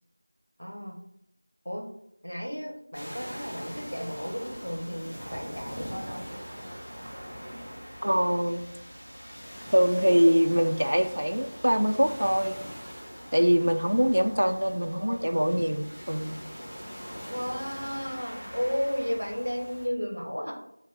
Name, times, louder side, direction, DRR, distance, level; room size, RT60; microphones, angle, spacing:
voice 1, 0.6-1.0 1.6-1.8 2.2-6.2 14.8-15.3 17.3-20.5, equal, 90° left, 1 dB, 1.3 m, -33 dB
sound 1, 2.9-19.9, equal, 5° left, 0.7 m, -42 dB
voice 2, 8.0-8.6 9.7-12.6 13.3-16.3, equal, 65° right, 8 dB, 0.4 m, -23 dB
5.2 x 2.2 x 4.2 m, 0.76 s
figure-of-eight pair, 175°, 0 cm